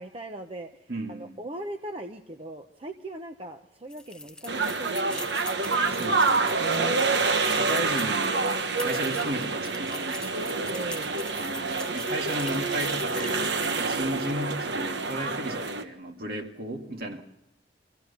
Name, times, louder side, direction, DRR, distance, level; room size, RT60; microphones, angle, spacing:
voice 1, 0.0-5.3 6.6-6.9 10.7-11.3 13.7-14.0 17.1-17.2, right 1 dB, 30° right, 5 dB, 0.8 m, -40 dB
voice 2, 0.9-1.4 5.9-8.4 8.8-10.7 11.3-13.5 13.8-17.2, right 1 dB, 55° right, 3 dB, 2.2 m, -35 dB
sound 1, 3.9-14.0, left 2 dB, 5° left, 0.7 m, -42 dB
sound 2, 4.5-15.8, right 4 dB, 80° right, 1.3 m, -27 dB
24.5 x 15.5 x 6.9 m, 0.91 s
head